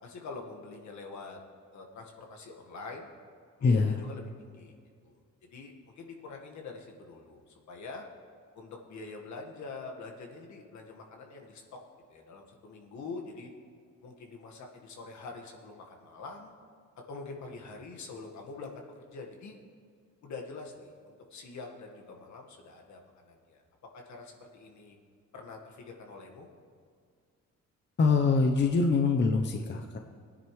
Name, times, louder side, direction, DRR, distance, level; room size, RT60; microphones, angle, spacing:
voice 1, 0.0-1.4 1.7-3.1 3.6-4.7 5.0-5.2 5.5-8.0 8.5-11.8 12.1-13.5 14.0-16.5 17.1-19.6 20.2-23.6 23.9-25.0 25.3-26.5, left 3 dB, 70° left, 1 dB, 1.6 m, -45 dB
voice 2, 3.6-4.0 28.0-30.0, left 4 dB, 35° left, 4 dB, 0.8 m, -24 dB
18.0 x 9.8 x 3.2 m, 2.2 s
cardioid pair, 90°, 30 cm